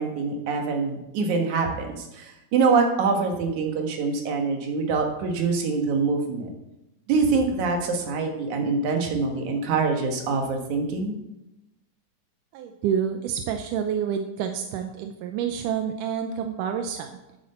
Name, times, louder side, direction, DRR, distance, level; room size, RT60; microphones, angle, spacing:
voice 1, 0.0-6.5 7.1-11.2, right 4 dB, 60° right, 3 dB, 2.5 m, -25 dB
voice 2, 12.5-17.1, right 8 dB, 80° right, 5 dB, 1.9 m, -28 dB
12.5 x 7.3 x 4.3 m, 0.92 s
omnidirectional pair, 4.3 m